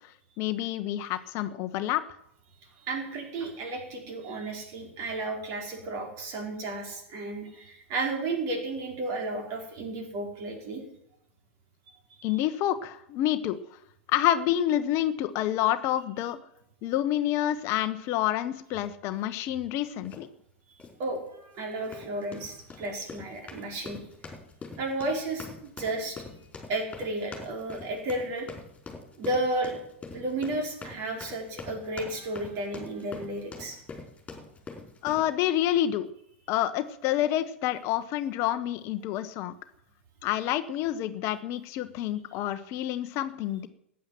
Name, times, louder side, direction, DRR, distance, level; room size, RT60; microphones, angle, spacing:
voice 1, 0.4-2.0 12.2-13.6 14.1-16.4 16.8-20.3 35.0-36.1 36.5-39.5 40.2-43.7, left 12 dB, 45° left, 11 dB, 1.0 m, -28 dB
voice 2, 2.8-10.8 12.3-12.4 21.0-24.0 24.8-26.2 26.7-28.5 29.2-29.8 30.1-33.8, right 2 dB, 45° right, 2 dB, 5.2 m, -33 dB
sound 1, 20.1-20.3 20.8-21.0 21.8-35.3, left 4 dB, 20° left, 4.7 m, -44 dB
15.0 x 9.7 x 7.6 m, 0.74 s
figure-of-eight pair, 95°, 7 cm